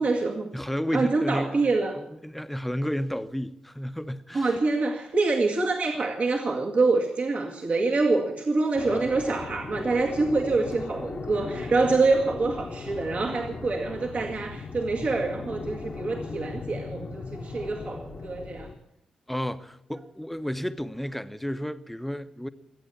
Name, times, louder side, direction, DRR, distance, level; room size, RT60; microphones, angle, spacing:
voice 1, 0.0-0.5 0.9-2.0 4.3-18.7, right 3 dB, 55° right, 2.0 m, -26 dB
voice 2, 0.5-1.7 2.2-4.5 19.3-22.5, equal, 5° left, 1.0 m, -32 dB
sound 1, 8.7-18.7, left 4 dB, 55° left, 1.3 m, -38 dB
23.5 x 8.8 x 7.1 m
hypercardioid pair, 40°, 3 cm